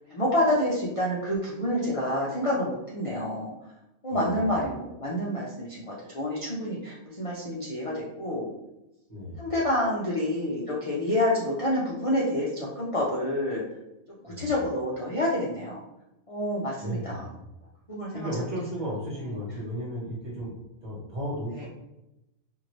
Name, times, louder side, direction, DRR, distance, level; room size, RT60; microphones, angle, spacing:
voice 1, 0.1-3.5 4.0-8.5 9.4-13.6 14.2-15.8 16.3-17.3 17.9-18.3 21.6-21.7, left 1 dB, 65° left, -6 dB, 0.3 m, -28 dB
voice 2, 4.1-4.5 9.1-9.4 14.3-14.5 16.8-17.3 18.1-20.5 20.8-21.7, equal, 35° right, -6 dB, 1.3 m, -34 dB
2.7 x 2.6 x 3.0 m, 0.90 s
omnidirectional pair, 1.5 m